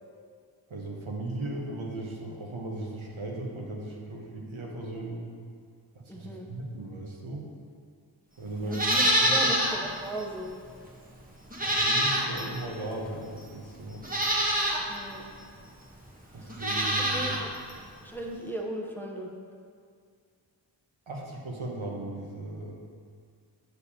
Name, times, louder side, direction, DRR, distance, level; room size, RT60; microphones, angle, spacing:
voice 1, 0.7-5.2 5.9-7.5 8.4-9.4 11.6-14.0 16.3-17.3 21.1-22.8, right 2 dB, 80° right, -1 dB, 1.1 m, -37 dB
voice 2, 6.1-6.5 8.6-10.5 14.9-15.3 16.3-16.6 16.9-17.5 18.0-19.3, right 1 dB, 5° left, -1 dB, 0.7 m, -37 dB
Livestock farm animals working animals, 8.7-9.8 10.2-10.3 11.5-12.6 13.4-13.5 14.0-14.8 16.5-17.4 17.7-17.8, equal, 20° right, 1.0 m, -25 dB
6.8 x 6.6 x 2.8 m, 2.2 s
wide cardioid pair, 50°, 47 cm